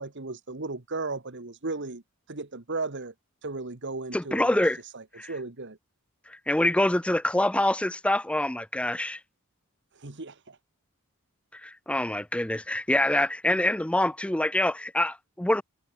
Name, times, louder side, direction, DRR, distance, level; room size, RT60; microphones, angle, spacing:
voice 1, 0.0-2.0 2.3-3.1 3.4-4.6 4.9-5.8 9.9-10.6, right 3 dB, 55° right, 1.6 m, -35 dB
voice 2, 4.1-4.8 5.2-5.3 6.3-9.2 11.5-15.6, left 1 dB, 5° left, 0.5 m, -25 dB
head